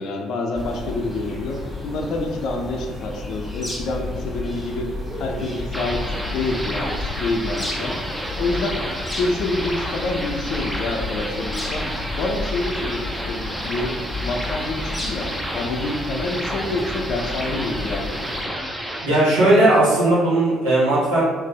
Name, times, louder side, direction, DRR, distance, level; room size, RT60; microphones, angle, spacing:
voice 1, 0.0-4.9 5.2-8.0 8.4-8.8 9.2-11.9 12.2-14.0 14.2-18.2, left 2 dB, 60° left, 2 dB, 0.4 m, -27 dB
sound 1, 0.5-18.4, left 2 dB, 10° left, 1.3 m, -32 dB
sound 2, 5.7-19.1, equal, 5° right, 0.6 m, -30 dB
voice 2, 19.0-21.2, right 1 dB, 85° right, -11 dB, 1.4 m, -17 dB
3.3 x 3.2 x 3.2 m, 1.4 s
hypercardioid pair, 55°, 0 cm